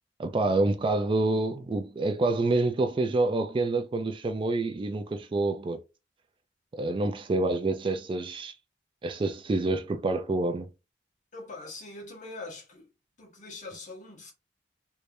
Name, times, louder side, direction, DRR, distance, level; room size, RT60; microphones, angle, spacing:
voice 1, 0.2-5.8 6.7-8.6 9.0-10.7, right 2 dB, 30° right, 0.3 m, -27 dB
voice 2, 11.3-12.9 13.2-14.3, left 2 dB, 45° left, 1.4 m, -43 dB
3.2 x 3.1 x 2.6 m
head